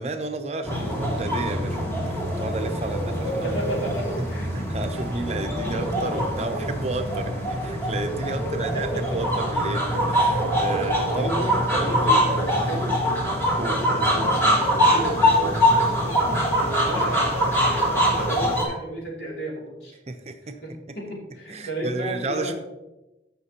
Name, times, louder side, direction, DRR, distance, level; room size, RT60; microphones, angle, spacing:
voice 1, 0.0-3.6 4.5-11.3 11.7-12.2 13.5-13.8 20.1-20.6 21.5-22.5, right 2 dB, 35° right, 7 dB, 0.6 m, -32 dB
sound 1, 0.6-18.6, equal, 15° left, 1.6 m, -23 dB
voice 2, 3.4-4.8 5.3-6.2 7.6-7.7 8.4-9.7 11.1-13.2 13.5-19.9 20.6-22.5, right 1 dB, 70° left, -3 dB, 2.7 m, -34 dB
14.5 x 5.8 x 2.9 m, 0.99 s
head